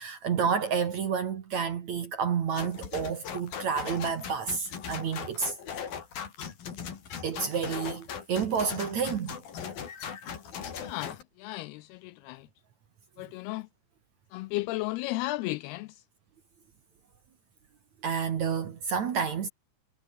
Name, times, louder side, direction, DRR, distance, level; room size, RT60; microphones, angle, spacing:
voice 1, 0.0-5.5 7.2-9.4 18.0-19.5, right 6 dB, 55° right, 2.6 m, -30 dB
sound 1, 2.5-11.2, left 7 dB, 60° left, 4.9 m, -39 dB
voice 2, 10.8-12.5 13.2-13.7 14.3-16.0, left 20 dB, 80° left, 2.5 m, -34 dB
omnidirectional pair, 4.7 m